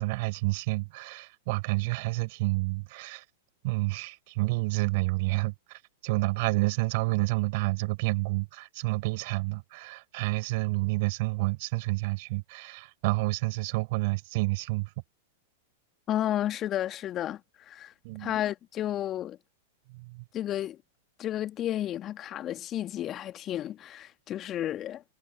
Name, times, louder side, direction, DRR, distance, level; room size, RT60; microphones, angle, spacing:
voice 1, 0.0-3.2 3.6-14.9 18.0-18.4 19.9-20.2, right 25 dB, 50° right, 5.4 m, -29 dB
voice 2, 16.1-17.4 17.7-17.9 18.2-19.4 20.3-20.8 21.2-25.0, left 12 dB, 30° left, 1.7 m, -32 dB
figure-of-eight pair, 100°, 0 cm